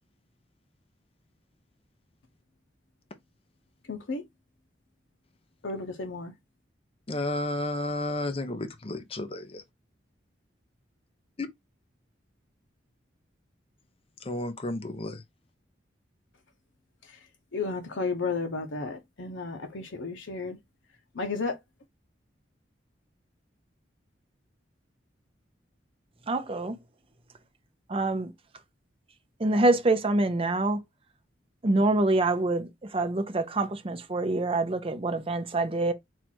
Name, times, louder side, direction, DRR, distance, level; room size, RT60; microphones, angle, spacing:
voice 1, 3.9-4.2 5.6-6.3 17.0-17.2 17.5-20.6 21.1-21.6, left 4 dB, 80° left, 0.8 m, -33 dB
voice 2, 7.1-9.6 11.4-11.5 14.2-15.2, left 2 dB, 30° left, 0.6 m, -32 dB
voice 3, 26.3-26.8 27.9-28.3 29.4-30.8 31.6-35.9, right 2 dB, 30° right, 0.6 m, -26 dB
4.5 x 2.4 x 4.3 m
head